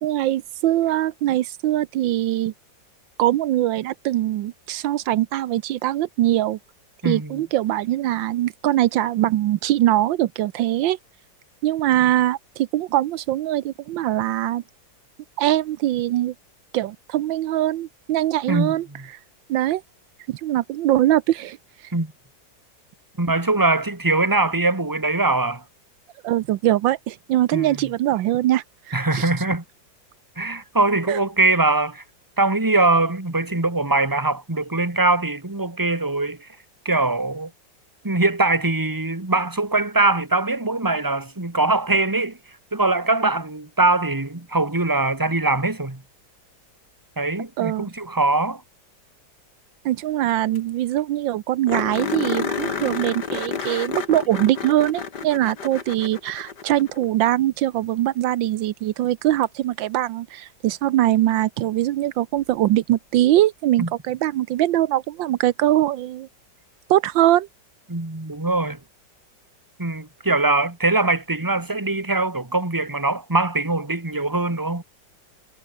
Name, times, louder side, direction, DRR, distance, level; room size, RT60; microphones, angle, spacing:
voice 1, 0.0-2.5 3.2-6.6 7.0-11.0 11.6-14.6 15.4-16.3 16.7-18.9 19.5-19.8 20.3-21.6 21.8-21.9 26.2-29.3 31.1-31.2 47.6-47.9 49.8-66.3 66.9-67.5, right 14 dB, 85° right, 1.5 m, -22 dB
voice 2, 7.0-7.4 18.5-18.7 21.9-22.1 23.2-25.6 27.5-27.8 28.9-29.6 30.4-32.0 32.4-36.4 36.9-37.5 38.0-42.4 42.7-46.0 47.2-48.6 63.8-63.9 67.9-68.8 69.8-74.8, right 2 dB, 10° right, 2.2 m, -22 dB
sound 1, 50.3-50.4 50.6-50.7 51.0-51.1 51.7-57.1 59.4-59.5 62.4-62.5, left 6 dB, 60° left, 2.6 m, -30 dB
omnidirectional pair, 2.0 m